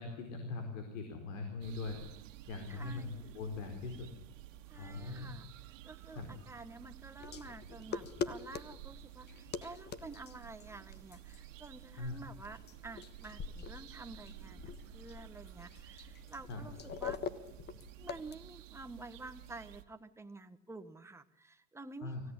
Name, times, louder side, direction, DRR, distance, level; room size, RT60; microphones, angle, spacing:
voice 1, 0.0-2.0 2.5-4.1 4.7-5.3 6.1-6.3 12.0-12.3 16.5-16.6 22.0-22.2, left 3 dB, 85° left, 5 dB, 4.4 m, -41 dB
sound 1, 1.6-19.8, right 15 dB, 85° right, 1.8 m, -53 dB
voice 2, 2.7-3.2 4.7-5.5 5.8-14.6 14.9-17.2 18.0-22.1, right 3 dB, 5° right, 8 dB, 1.3 m, -50 dB
sound 2, 7.2-18.3, left 6 dB, 25° left, 1.3 m, -45 dB
24.5 x 16.5 x 9.9 m, 0.81 s
supercardioid pair, 125°, 37 cm